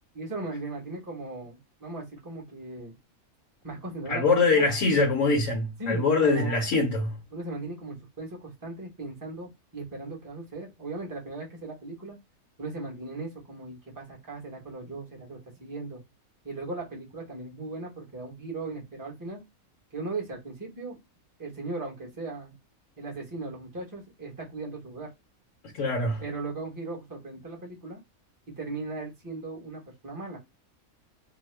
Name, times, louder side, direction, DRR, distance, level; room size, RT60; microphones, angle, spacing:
voice 1, 0.1-3.0 3.6-4.7 5.8-6.6 7.3-12.2 12.6-16.0 16.4-19.4 19.9-21.0 21.4-22.6 23.0-25.1 26.2-28.0 28.6-30.4, right 3 dB, 15° right, 0.9 m, -38 dB
voice 2, 4.1-7.2 25.8-26.2, left 3 dB, 65° left, 1.2 m, -23 dB
2.8 x 2.2 x 3.2 m
omnidirectional pair, 1.5 m